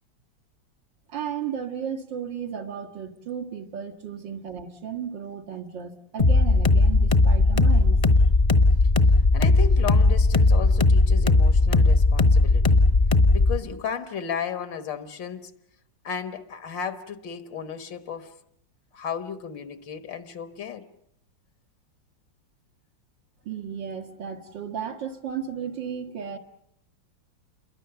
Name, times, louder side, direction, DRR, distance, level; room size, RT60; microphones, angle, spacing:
voice 1, 1.1-8.0 23.5-26.4, right 8 dB, 80° right, 2.4 m, -34 dB
sound 1, 6.2-13.6, left 3 dB, 30° left, 0.8 m, -18 dB
voice 2, 9.3-12.8 13.3-15.5 16.0-18.3 18.9-20.9, left 7 dB, 80° left, 2.0 m, -34 dB
28.0 x 22.5 x 6.9 m
omnidirectional pair, 2.0 m